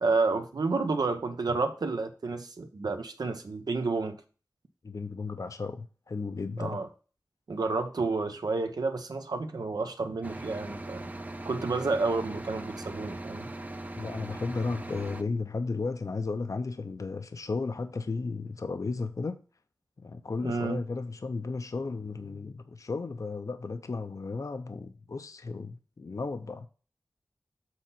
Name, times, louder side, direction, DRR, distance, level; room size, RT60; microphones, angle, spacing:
voice 1, 0.0-4.2 6.6-6.9 7.5-11.1 11.4-13.5 20.4-20.8, right 3 dB, 80° right, 1.1 m, -30 dB
voice 2, 4.8-6.8 14.0-19.4 20.0-26.7, left 4 dB, 55° left, 0.6 m, -34 dB
sound 1, 10.2-15.2, right 1 dB, 25° right, 0.6 m, -40 dB
7.6 x 4.2 x 5.8 m
wide cardioid pair, 75°, 7 cm